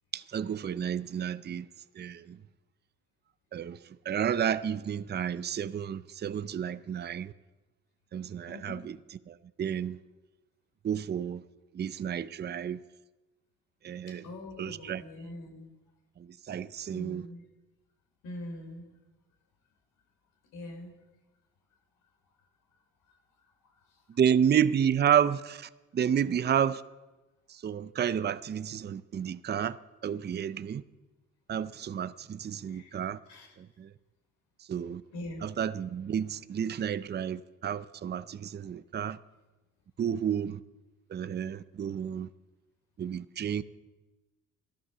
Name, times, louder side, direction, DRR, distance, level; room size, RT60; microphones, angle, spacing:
voice 1, 0.1-1.6 2.0-2.2 3.5-3.8 4.1-7.3 8.1-9.0 9.3-10.0 10.8-11.4 11.8-12.8 13.8-14.2 14.6-15.0 16.5-17.3 24.2-26.8 27.6-29.8 30.0-30.8 31.5-33.2 34.7-35.0 35.4-39.2 40.0-40.6 41.1-42.3 43.0-43.6, right 8 dB, 35° right, 0.5 m, -30 dB
voice 2, 8.5-8.8 14.2-15.7 16.9-17.4 18.2-18.8 20.5-20.9 32.7-33.0 33.3-33.6 35.1-35.4, left 1 dB, 85° left, 4.0 m, -43 dB
13.0 x 11.5 x 6.8 m
cardioid pair, 90°, 30 cm